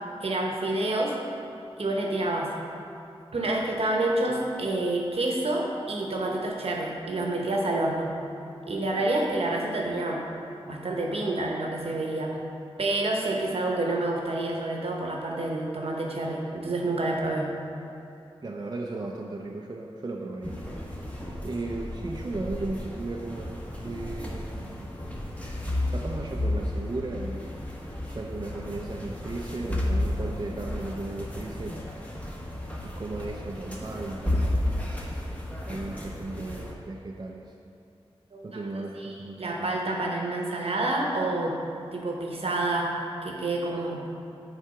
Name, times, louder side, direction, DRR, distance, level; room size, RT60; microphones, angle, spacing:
voice 1, 0.2-1.2 1.8-2.5 3.3-8.2 8.7-10.3 10.6-12.4 12.8-17.6 38.3-38.7 39.0-41.6 41.9-44.1, right 2 dB, 70° right, -1 dB, 0.9 m, -28 dB
voice 2, 18.4-20.6 20.9-25.0 25.9-27.6 28.1-31.9 32.8-34.8 35.7-37.5 38.4-39.8, right 2 dB, 40° right, 0 dB, 0.5 m, -36 dB
sound 1, 20.4-36.7, left 1 dB, 15° left, 1.1 m, -33 dB
7.3 x 3.4 x 4.8 m, 2.7 s
cardioid pair, 50°, 10 cm